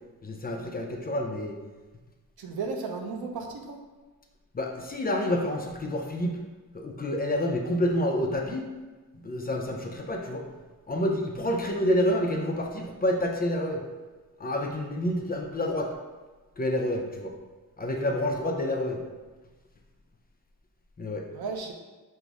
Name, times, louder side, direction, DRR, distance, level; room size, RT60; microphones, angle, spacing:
voice 1, 0.2-1.6 4.5-6.4 6.7-8.7 9.2-10.4 10.9-13.8 14.4-15.9 16.6-17.3 17.8-19.0 21.0-21.2, left 1 dB, 25° left, 1 dB, 0.4 m, -28 dB
voice 2, 2.4-3.8 21.3-21.7, right 4 dB, 85° right, 3 dB, 0.7 m, -34 dB
5.3 x 2.0 x 4.6 m, 1.3 s
wide cardioid pair, 150°, 36 cm